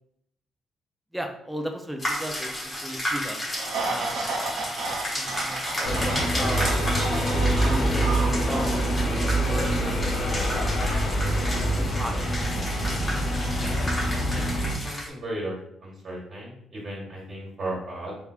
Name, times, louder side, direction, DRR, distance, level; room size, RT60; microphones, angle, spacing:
voice 1, 1.1-2.5 2.8-3.4 3.8-4.7 5.2-6.8 7.4-12.3, equal, 5° right, 3 dB, 0.5 m, -36 dB
sound 1, 2.0-15.1, equal, 20° left, 1.1 m, -33 dB
sound 2, 3.6-9.3, right 3 dB, 85° right, 0.6 m, -33 dB
sound 3, 5.8-14.7, right 1 dB, 65° left, 0.9 m, -25 dB
voice 2, 14.8-15.5 15.8-18.1, right 1 dB, 40° right, -5 dB, 1.2 m, -35 dB
3.4 x 3.2 x 2.4 m, 0.73 s
cardioid pair, 115°, 0 cm